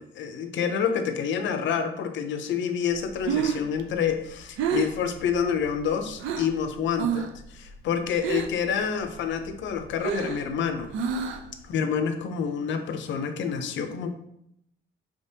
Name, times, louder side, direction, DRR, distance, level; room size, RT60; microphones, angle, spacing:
voice 1, 0.0-7.3 7.5-10.9 11.6-14.1, left 7 dB, 70° left, 8 dB, 0.6 m, -28 dB
Breathing, 3.0-6.6 6.9-7.4 7.7-8.7 9.0-11.6, right 6 dB, 80° right, 0.5 m, -29 dB
5.1 x 3.4 x 2.8 m, 0.77 s
cardioid pair, 90°, 20 cm